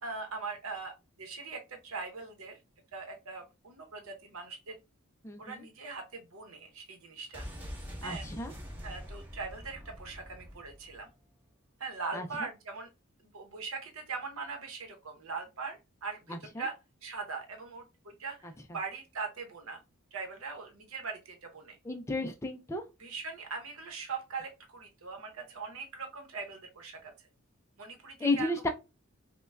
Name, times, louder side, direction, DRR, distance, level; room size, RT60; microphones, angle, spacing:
voice 1, 0.0-2.6 2.9-4.8 5.4-7.5 8.0-8.3 8.8-11.1 11.8-12.9 13.2-16.8 17.0-18.4 18.7-19.8 20.1-21.8 23.0-27.1 27.8-28.7, right 4 dB, 80° right, 0.9 m, -41 dB
voice 2, 5.2-5.6 8.0-8.5 12.1-12.3 16.3-16.4 18.4-18.5 21.9-22.8 28.2-28.7, left 2 dB, 15° left, 0.3 m, -32 dB
sound 1, 7.3-11.1 11.4-11.5, equal, 10° right, 1.2 m, -44 dB
5.4 x 2.2 x 2.3 m
head